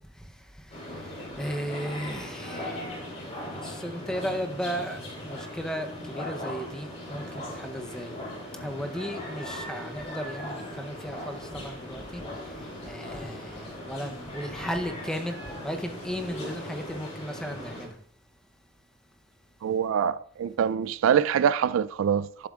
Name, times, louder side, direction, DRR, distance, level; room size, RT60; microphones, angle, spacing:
sound 1, 0.7-17.9, left 1 dB, 30° left, 2.7 m, -39 dB
voice 1, 1.4-2.9 3.3-8.1 8.6-12.2 12.8-15.4 15.6-17.9, equal, 5° left, 0.7 m, -35 dB
voice 2, 19.6-22.5, right 8 dB, 75° right, 0.3 m, -25 dB
12.0 x 7.4 x 2.4 m
head